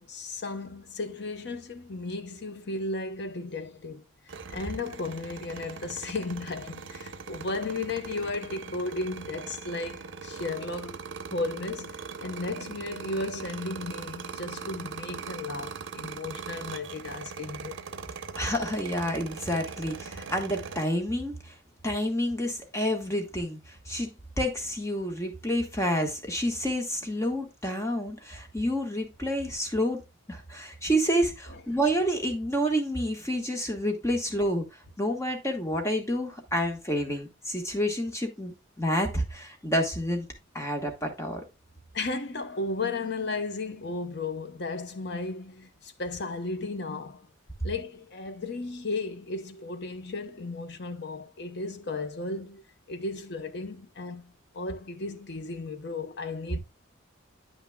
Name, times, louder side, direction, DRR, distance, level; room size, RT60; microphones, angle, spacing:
voice 1, 0.0-11.0 11.3-17.8 41.9-47.3 47.6-52.6 52.9-56.6, left 3 dB, 55° left, 0.7 m, -35 dB
sound 1, 4.3-20.8, right 5 dB, 65° right, 0.7 m, -40 dB
voice 2, 18.4-21.5 21.8-24.1 24.4-30.0 30.3-34.6 35.0-40.3 40.5-41.4, equal, 15° left, 1.2 m, -29 dB
9.0 x 6.0 x 2.2 m
head